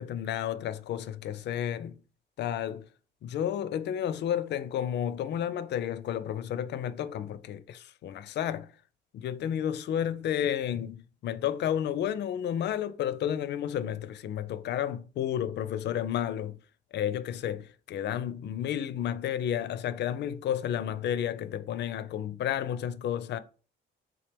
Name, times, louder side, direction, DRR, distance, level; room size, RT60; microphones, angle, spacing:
voice 1, 0.0-2.0 2.4-2.9 3.2-8.7 9.1-16.6 16.9-23.4, left 10 dB, 60° left, 0.4 m, -31 dB
3.7 x 2.9 x 3.3 m
cardioid pair, 90°, 20 cm